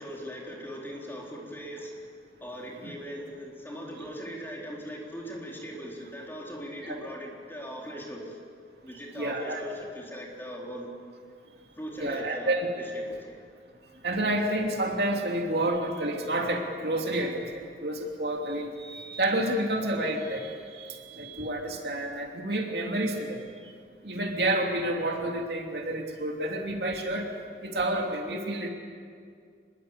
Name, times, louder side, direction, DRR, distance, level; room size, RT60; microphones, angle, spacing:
voice 1, 0.0-2.0 2.4-8.4 8.8-10.9 11.8-13.4, equal, 10° left, -2 dB, 4.0 m, -40 dB
voice 2, 9.1-9.6 12.0-12.7 14.0-23.5 24.0-27.3 27.6-28.7, right 1 dB, 60° right, 1 dB, 3.0 m, -29 dB
25.5 x 21.5 x 8.3 m, 2.2 s
head